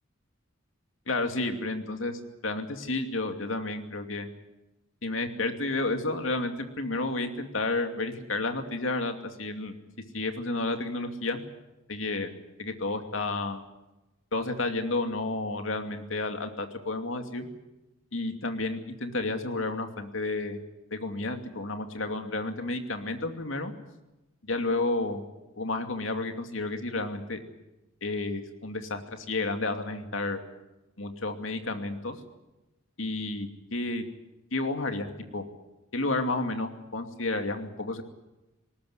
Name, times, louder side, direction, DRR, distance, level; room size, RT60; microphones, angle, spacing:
voice 1, 1.1-4.3 5.0-9.8 10.1-11.4 11.9-12.3 12.6-13.6 14.3-17.5 18.1-20.6 20.9-23.7 24.4-25.2 25.6-27.4 28.0-30.4 31.0-32.2 33.0-34.0 34.5-35.4 35.9-38.0, left 2 dB, 75° left, 6 dB, 2.6 m, -31 dB
20.0 x 19.0 x 9.7 m, 0.99 s
head